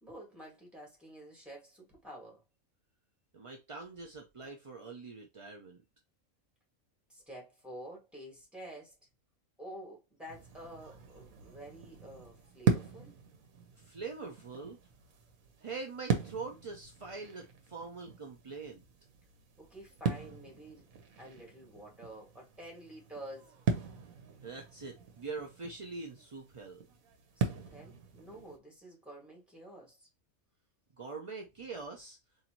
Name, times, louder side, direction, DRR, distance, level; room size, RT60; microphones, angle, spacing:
voice 1, 0.0-2.4 7.1-9.0 9.6-13.2 19.6-20.8 21.2-23.5 27.3-30.1, right 1 dB, ahead, 1.8 m, -49 dB
voice 2, 3.3-5.8 13.8-14.8 15.6-18.8 24.4-26.8 31.0-32.2, right 4 dB, 50° right, 0.4 m, -43 dB
sound 1, 10.3-28.6, right 6 dB, 80° right, 1.2 m, -39 dB
4.2 x 2.7 x 2.9 m
omnidirectional pair, 1.4 m